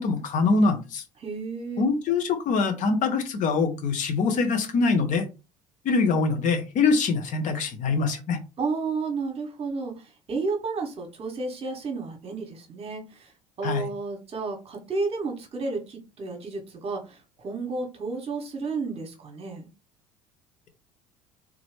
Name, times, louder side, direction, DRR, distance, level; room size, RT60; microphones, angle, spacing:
voice 1, 0.0-1.0 1.8-5.2 5.8-8.4 13.6-13.8, left 4 dB, 50° left, 7 dB, 1.1 m, -24 dB
voice 2, 1.2-1.9 8.6-13.3 13.6-19.7, right 4 dB, 35° right, 2 dB, 1.2 m, -32 dB
3.8 x 3.0 x 3.3 m, 0.29 s
figure-of-eight pair, 60°, 17 cm